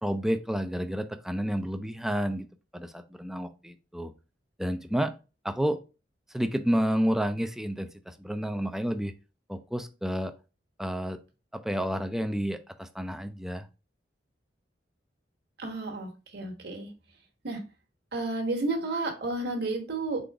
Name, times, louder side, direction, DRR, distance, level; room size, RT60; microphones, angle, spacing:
voice 1, 0.0-2.5 2.7-4.1 4.6-5.1 5.4-5.8 6.3-9.1 9.5-10.3 10.8-11.2 11.5-13.7, equal, ahead, 9 dB, 0.4 m, -30 dB
voice 2, 15.6-16.9 17.4-17.6 18.1-20.2, right 2 dB, 60° right, 3 dB, 1.3 m, -31 dB
3.9 x 3.8 x 3.4 m, 0.31 s
head